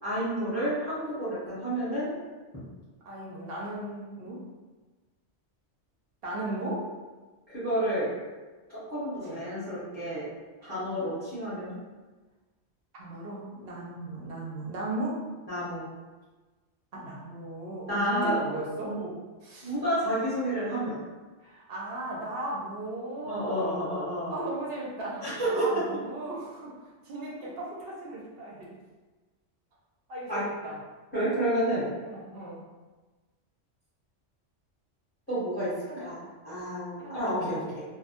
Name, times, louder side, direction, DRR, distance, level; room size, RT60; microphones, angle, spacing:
voice 1, 0.0-2.1 7.5-8.1 8.7-10.3 10.6-11.7 15.5-15.9 17.9-18.4 18.8-19.1 19.6-21.0 23.2-24.3 25.2-25.7 30.3-30.4 31.1-31.9 35.3-37.8, right 1 dB, 10° left, -13 dB, 0.7 m, -30 dB
voice 2, 3.1-4.4 6.2-6.9 9.2-9.4 13.0-15.2 16.9-18.9 19.4-19.7 21.4-23.8 24.3-26.7 27.0-28.6 30.1-30.8 32.1-32.6 35.9-36.0 37.0-37.6, right 1 dB, 65° right, -4 dB, 0.7 m, -36 dB
2.1 x 2.1 x 2.7 m, 1.3 s
omnidirectional pair, 1.2 m